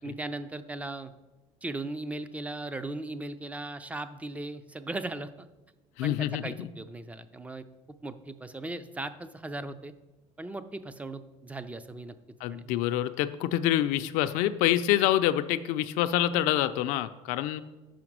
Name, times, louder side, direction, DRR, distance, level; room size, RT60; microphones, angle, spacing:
voice 1, 0.0-1.1 1.6-5.5 6.0-7.7 8.0-9.9 10.4-12.2 12.5-12.7, right 2 dB, 10° right, 12 dB, 0.4 m, -38 dB
voice 2, 6.0-6.7 12.4-17.6, left 13 dB, 80° left, 10 dB, 0.4 m, -26 dB
5.7 x 5.0 x 6.0 m, 1.1 s
cardioid pair, 125°, 13 cm